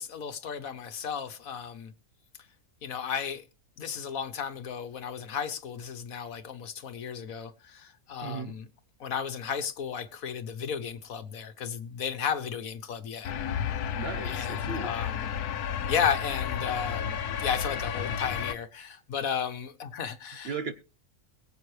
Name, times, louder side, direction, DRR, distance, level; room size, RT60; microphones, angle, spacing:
voice 1, 0.0-1.9 2.8-3.4 3.8-8.7 9.0-13.3 14.2-15.3 15.9-20.6, left 7 dB, 65° left, 1.4 m, -34 dB
voice 2, 8.2-8.5 13.9-15.1 20.4-20.7, right 4 dB, 50° right, 0.9 m, -36 dB
sound 1, 13.2-18.5, left 8 dB, 90° left, 1.3 m, -32 dB
22.0 x 7.8 x 3.2 m
omnidirectional pair, 1.6 m